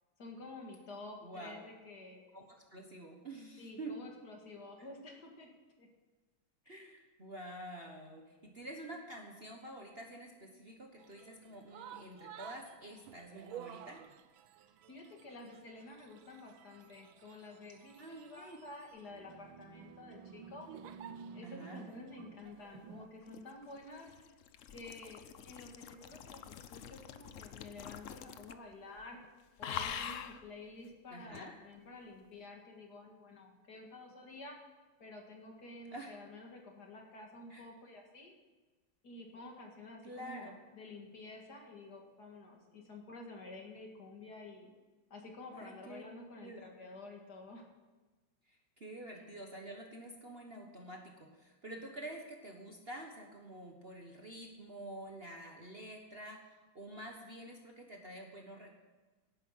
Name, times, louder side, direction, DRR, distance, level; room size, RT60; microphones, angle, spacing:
voice 1, 0.2-2.2 3.6-5.9 6.7-6.9 14.9-20.7 21.3-24.1 24.7-29.2 29.6-34.6 35.0-38.3 39.0-44.7 45.1-47.6, left 2 dB, 50° left, 1 dB, 2.4 m, -50 dB
voice 2, 1.2-1.6 2.3-4.0 6.7-14.0 18.0-18.6 21.4-21.8 31.1-31.5 35.9-36.1 37.5-37.6 40.0-40.6 45.5-46.0 46.4-46.7 48.5-58.7, right 1 dB, 35° right, 1 dB, 1.3 m, -48 dB
sound 1, 11.0-23.1, right 8 dB, 75° right, 1.5 m, -52 dB
sound 2, 23.0-28.7 29.0-29.3 29.6-30.4 31.3-31.5, left 8 dB, 85° left, 0.6 m, -45 dB
17.5 x 9.4 x 5.7 m, 1.2 s
omnidirectional pair, 2.2 m